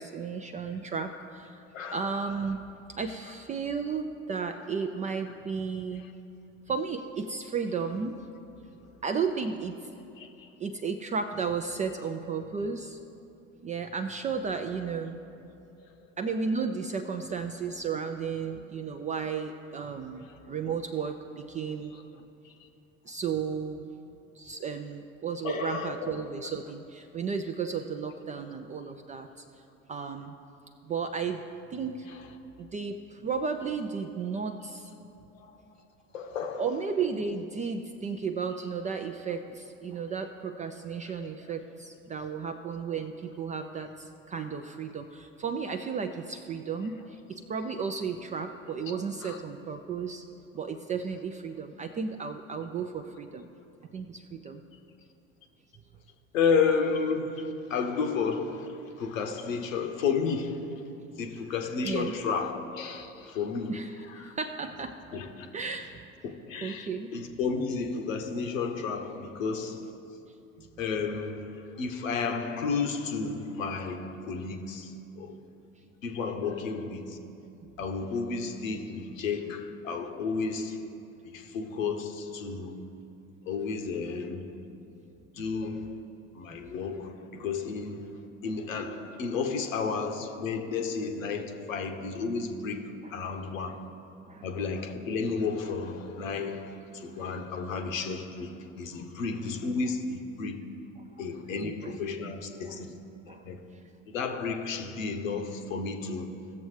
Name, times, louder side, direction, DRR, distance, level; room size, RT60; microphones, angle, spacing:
voice 1, 0.0-1.6 1.9-2.6 2.9-6.1 6.7-8.1 9.0-9.9 10.6-13.0 13.6-15.2 16.2-21.9 23.1-23.9 24.4-29.3 29.9-30.4 30.8-31.4 31.7-32.1 32.6-34.9 36.6-50.2 50.5-53.5 53.9-54.6 61.8-62.1 63.7-63.9 64.2-64.9 65.5-66.0 66.6-67.1 93.0-93.2 93.7-93.8 94.3-94.4 101.6-102.0 102.2-102.3 102.7-102.8 103.3-103.5, right 5 dB, 20° right, 6 dB, 0.3 m, -34 dB
voice 2, 1.7-2.2 6.0-6.1 10.2-10.5 20.2-20.4 21.9-22.0 22.4-22.7 25.4-26.1 32.1-32.2 35.3-35.6 36.1-36.7 41.0-41.1 41.4-41.5 48.9-49.4 56.3-60.9 61.2-63.8 64.1-64.3 65.1-65.5 66.2-70.0 70.8-75.4 76.0-77.2 77.8-80.8 81.2-82.9 83.5-84.6 85.3-86.0 86.3-93.8 94.4-100.6 101.2-103.0 103.3-103.6 104.1-106.5, left 5 dB, 70° left, 5 dB, 1.0 m, -32 dB
17.0 x 7.0 x 3.2 m, 2.7 s
figure-of-eight pair, 65°, 40 cm